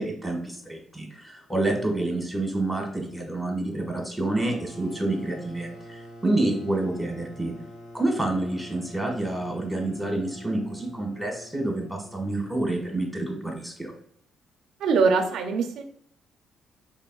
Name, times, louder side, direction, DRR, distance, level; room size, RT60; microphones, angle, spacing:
voice 1, 0.0-7.5 7.9-13.9, right 2 dB, ahead, 0 dB, 1.5 m, -28 dB
sound 1, 4.4-12.9, equal, 70° left, 1.2 m, -46 dB
voice 2, 14.8-15.8, right 4 dB, 80° right, 5 dB, 0.5 m, -22 dB
4.3 x 3.6 x 2.3 m, 0.65 s
cardioid pair, 90°, 0 cm